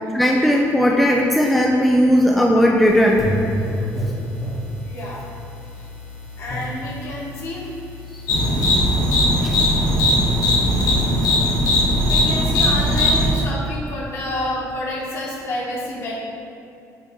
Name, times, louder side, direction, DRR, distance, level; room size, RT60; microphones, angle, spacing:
voice 1, 0.1-3.3 9.4-9.5, equal, ahead, -1 dB, 0.4 m, -16 dB
sound 1, 2.9-9.2, left 1 dB, 30° left, 1.0 m, -30 dB
voice 2, 4.8-5.2 6.4-7.7 8.5-8.6 11.8-16.1, left 1 dB, 50° left, -4 dB, 1.5 m, -29 dB
sound 2, 8.3-13.3, left 1 dB, 70° left, 1.2 m, -18 dB
8.4 x 3.3 x 3.8 m, 2.5 s
cardioid pair, 155°, 6 cm